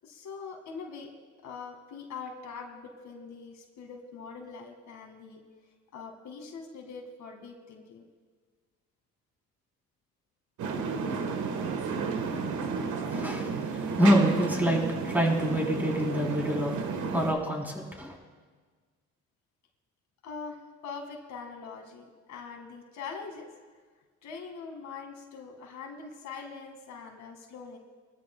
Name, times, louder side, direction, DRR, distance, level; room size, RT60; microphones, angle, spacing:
voice 1, 0.0-1.1 1.4-5.4 5.9-8.1 20.2-23.5 24.2-27.8, left 5 dB, 75° left, 3 dB, 2.1 m, -43 dB
sound 1, 10.6-17.3, right 5 dB, 75° right, 1.5 m, -32 dB
voice 2, 13.1-16.7 17.1-18.2, equal, 5° right, -1 dB, 3.5 m, -26 dB
23.0 x 13.5 x 2.3 m, 1.5 s
cardioid pair, 90°, 30 cm